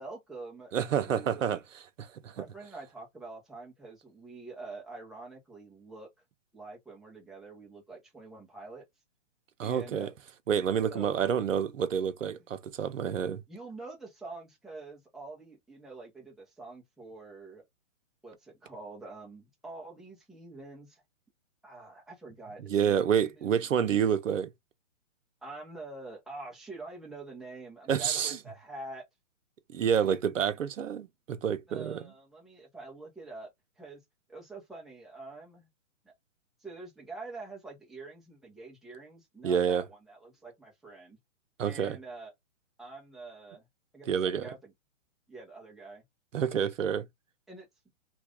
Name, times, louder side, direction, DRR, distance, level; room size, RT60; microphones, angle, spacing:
voice 1, 0.0-0.7 1.0-1.4 2.4-6.1 6.5-8.8 9.6-10.2 10.9-11.2 13.5-17.6 18.2-21.0 21.6-23.7 25.4-29.0 31.7-33.5 33.8-34.0 34.3-35.7 36.0-36.1 36.6-41.2 41.6-42.3 42.8-43.7 43.9-44.7 45.3-46.0 47.5-47.7, right 3 dB, ahead, 1.0 m, -46 dB
voice 2, 0.7-1.6 2.0-2.4 9.6-10.1 10.5-13.4 22.7-24.5 27.9-28.4 29.7-32.1 39.4-39.8 41.6-42.0 44.1-44.5 46.3-47.1, right 8 dB, 80° right, 0.8 m, -28 dB
3.2 x 2.6 x 3.6 m
hypercardioid pair, 140°, 38 cm